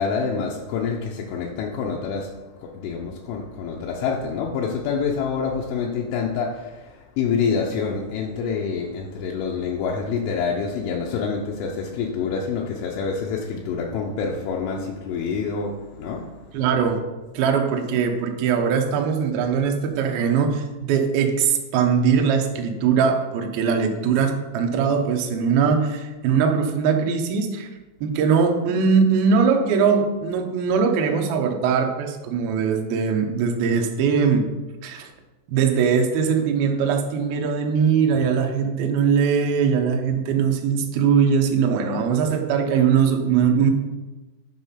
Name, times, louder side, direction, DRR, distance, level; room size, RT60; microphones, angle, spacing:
voice 1, 0.0-16.7, left 5 dB, 80° left, 3.2 m, -27 dB
voice 2, 16.5-17.0 17.3-27.7 28.0-34.5 34.8-35.1 35.5-43.7, right 6 dB, 75° right, 2.2 m, -21 dB
11.0 x 5.5 x 5.7 m
omnidirectional pair, 5.7 m